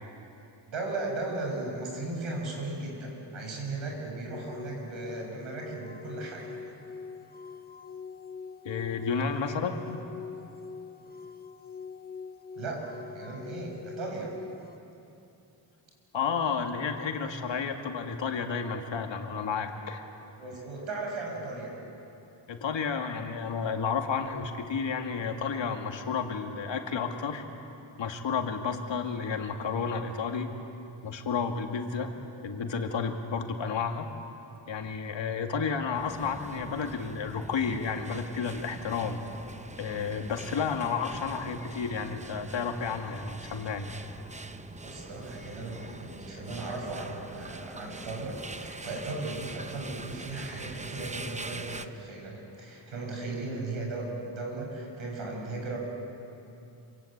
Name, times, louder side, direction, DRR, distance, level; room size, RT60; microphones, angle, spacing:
voice 1, 0.7-6.6 12.6-14.3 20.4-21.7 44.8-55.8, right 2 dB, 85° right, 0 dB, 7.1 m, -36 dB
sound 1, 4.3-14.8, left 5 dB, 20° left, 0.7 m, -44 dB
voice 2, 8.6-10.0 16.1-20.1 22.5-27.4 28.0-30.5 31.0-32.1 32.4-34.1 34.7-39.2 39.8-43.9, left 5 dB, 70° left, 4 dB, 2.4 m, -31 dB
sound 2, 36.0-51.9, right 2 dB, 15° right, 0.8 m, -43 dB
26.5 x 25.0 x 8.9 m, 2.8 s
wide cardioid pair, 145°, 46 cm